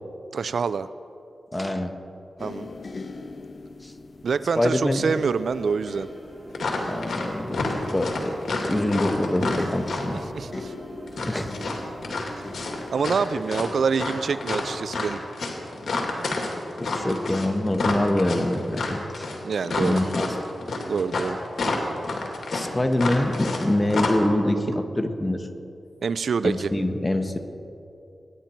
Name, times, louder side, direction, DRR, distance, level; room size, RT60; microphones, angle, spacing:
voice 1, 0.3-0.9 2.4-2.7 4.2-6.1 10.3-10.7 12.9-15.2 19.4-20.0 20.9-21.4 26.0-26.7, right 5 dB, 75° right, 14 dB, 0.4 m, -26 dB
voice 2, 1.5-1.9 3.8-3.9 4.5-5.1 6.9-10.2 11.2-11.5 13.3-13.4 16.8-19.3 19.8-20.3 22.5-25.5 26.4-27.4, left 1 dB, 20° left, 6 dB, 1.4 m, -25 dB
sound 1, 2.4-15.5 16.3-16.5, left 3 dB, 50° left, 0.9 m, -41 dB
sound 2, 5.0-12.9, right 2 dB, 55° right, 2.4 m, -44 dB
sound 3, 6.5-7.3 7.5-10.2 11.1-13.2 13.5-23.6 23.9-24.1, left 3 dB, 70° left, 2.3 m, -29 dB
23.5 x 10.5 x 4.5 m, 2.7 s
cardioid pair, 55°, 0 cm